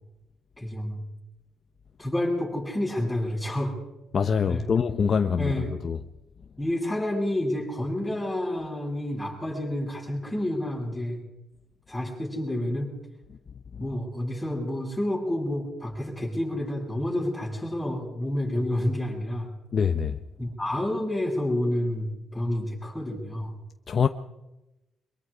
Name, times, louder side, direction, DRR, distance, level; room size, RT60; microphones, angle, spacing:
voice 1, 0.6-1.0 2.0-3.7 4.5-4.7 5.4-5.7 6.6-11.2 11.9-12.9 13.8-19.5 20.4-23.6, left 1 dB, 10° left, 7.9 m, -29 dB
voice 2, 4.1-5.5 5.8-6.0 19.7-20.2 23.9-24.1, left 6 dB, 45° left, 1.0 m, -24 dB
24.0 x 22.5 x 5.1 m
cardioid pair, 90°, 0 cm